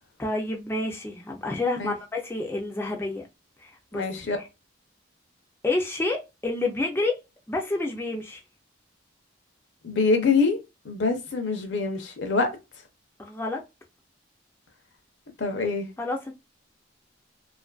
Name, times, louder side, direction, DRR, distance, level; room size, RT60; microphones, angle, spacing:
voice 1, 0.2-3.3 3.6-4.1 4.3-4.5 5.6-7.2 7.5-8.4 13.2-13.6 16.0-16.3, left 2 dB, 10° left, 0.3 m, -29 dB
voice 2, 3.9-4.4 9.8-10.6 10.8-12.5 15.4-15.9, left 4 dB, 65° left, 0.6 m, -24 dB
2.5 x 2.4 x 2.3 m
head